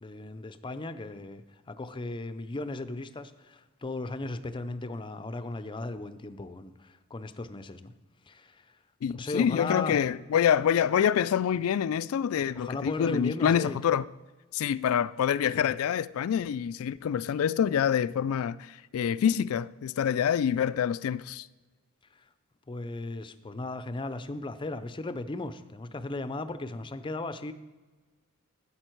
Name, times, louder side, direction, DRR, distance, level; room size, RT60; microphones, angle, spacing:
voice 1, 0.0-7.9 8.3-8.8 9.1-10.0 12.5-13.8 22.1-22.3 22.7-27.5, left 2 dB, 25° left, 0.5 m, -36 dB
voice 2, 9.0-14.0 14.5-21.5, left 8 dB, 80° left, 0.3 m, -26 dB
12.5 x 8.6 x 4.5 m
head